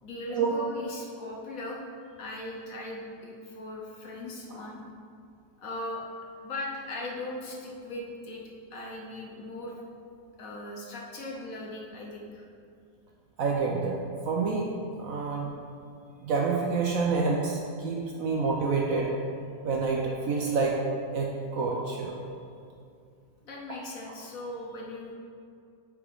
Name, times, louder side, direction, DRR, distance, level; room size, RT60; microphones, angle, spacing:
voice 1, 0.0-1.9 2.2-4.8 5.6-6.0 6.4-9.8 10.4-12.5 23.4-25.1, left 1 dB, 60° left, -1 dB, 1.1 m, -39 dB
voice 2, 13.4-13.9 14.3-14.7 15.0-15.5 16.2-19.1 19.6-20.8 21.1-22.2, right 4 dB, 65° right, -1 dB, 0.9 m, -28 dB
8.4 x 4.6 x 3.6 m, 2.4 s
omnidirectional pair, 1.9 m